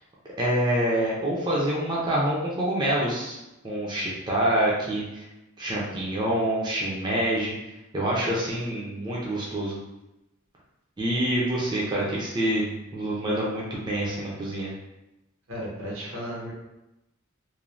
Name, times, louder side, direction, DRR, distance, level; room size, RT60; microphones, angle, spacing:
voice 1, 0.4-3.4 3.6-5.3 5.6-7.5 7.9-9.8 11.0-14.7, right 1 dB, 20° right, -5 dB, 0.5 m, -26 dB
voice 2, 15.5-16.5, equal, 70° right, -3 dB, 0.8 m, -34 dB
3.1 x 2.1 x 2.5 m, 0.95 s
head